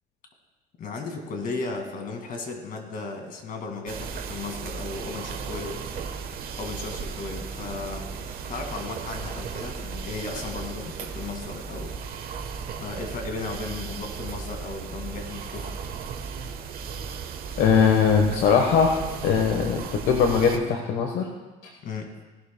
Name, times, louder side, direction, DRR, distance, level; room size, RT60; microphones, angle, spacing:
voice 1, 0.8-5.8 6.6-8.1 8.5-11.9 12.8-15.7 21.8-22.1, left 3 dB, 55° left, 3 dB, 2.1 m, -35 dB
sound 1, 3.9-20.6, right 6 dB, 60° right, 1.1 m, -36 dB
voice 2, 17.6-21.3, left 6 dB, 80° left, 2 dB, 1.2 m, -21 dB
18.0 x 12.0 x 2.2 m, 1.2 s
cardioid pair, 110°, 17 cm